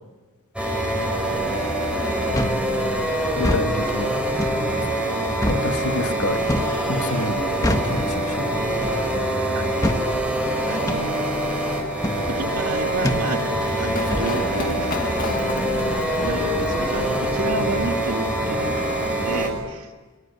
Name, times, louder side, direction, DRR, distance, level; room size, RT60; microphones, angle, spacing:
sound 1, 0.5-19.5, right 1 dB, 5° right, 5.5 m, -24 dB
sound 2, 2.3-2.6 3.3-3.7 4.4-4.6 5.4-5.7 6.5-6.8 7.6-8.0 8.8-9.1 9.8-10.1 10.9-11.1 12.0-12.2 13.0-13.3 14.1-14.3, left 1 dB, 15° left, 1.6 m, -24 dB
voice 1, 3.3-4.2 5.5-6.4 6.9-8.6, left 2 dB, 85° left, 6 dB, 2.0 m, -29 dB
voice 2, 10.7-11.2 12.2-15.1 16.2-19.0 19.2-19.9, right 2 dB, 90° right, 5 dB, 2.2 m, -31 dB
Run, 12.5-18.1, left 2 dB, 40° left, 1.9 m, -33 dB
25.0 x 23.5 x 9.8 m, 1.3 s
head